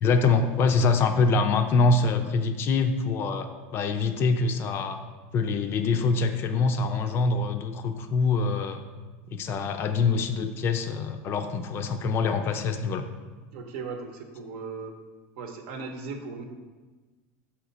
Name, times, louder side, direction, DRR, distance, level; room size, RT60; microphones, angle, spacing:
voice 1, 0.0-5.0 5.3-8.8 9.3-13.0, left 4 dB, 35° left, 8 dB, 0.4 m, -24 dB
voice 2, 13.5-14.9 15.4-16.4, right 4 dB, 65° right, 5 dB, 0.8 m, -37 dB
5.7 x 4.9 x 4.1 m, 1.3 s
supercardioid pair, 145°, 7 cm